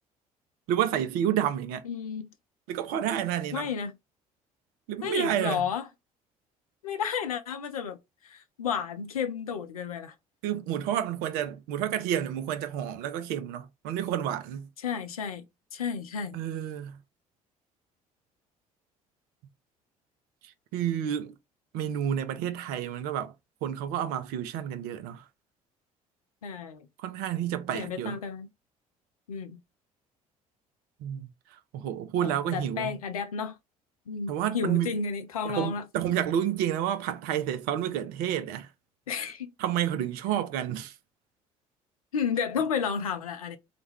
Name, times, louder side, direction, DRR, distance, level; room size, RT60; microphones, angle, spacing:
voice 1, 0.7-1.8 2.7-3.7 4.9-5.6 10.4-14.7 16.3-17.0 20.4-21.4 21.7-23.3 23.6-25.2 27.0-28.2 31.0-33.0 34.3-34.9 35.4-38.7 39.6-40.9, right 10 dB, 55° right, 0.5 m, -30 dB
voice 2, 1.9-2.3 3.5-3.9 5.0-5.9 6.8-8.0 8.2-10.1 14.8-15.4 15.7-16.4 26.4-26.9 27.7-28.5 29.3-29.6 32.5-33.6 34.1-35.8 39.1-39.5 42.1-43.6, left 6 dB, 80° left, 0.4 m, -32 dB
2.4 x 2.1 x 3.2 m
figure-of-eight pair, 50°, 18 cm